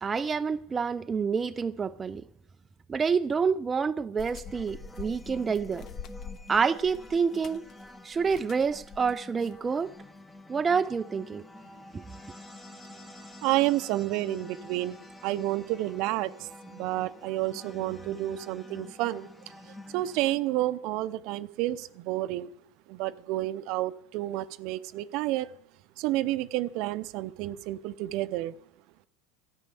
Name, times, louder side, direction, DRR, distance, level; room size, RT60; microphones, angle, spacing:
voice 1, 0.0-2.2 2.9-5.9 6.5-7.6 8.0-9.9 10.5-11.4 11.9-12.0, right 5 dB, 20° right, 0.4 m, -28 dB
sound 1, 4.2-9.7, left 6 dB, 45° left, 0.9 m, -45 dB
sound 2, 4.4-20.4, left 2 dB, 10° left, 1.0 m, -48 dB
voice 2, 13.4-19.3 19.9-22.5 22.9-25.5 26.0-28.5, right 16 dB, 60° right, 0.6 m, -30 dB
12.5 x 10.0 x 6.9 m
supercardioid pair, 115°, 0 cm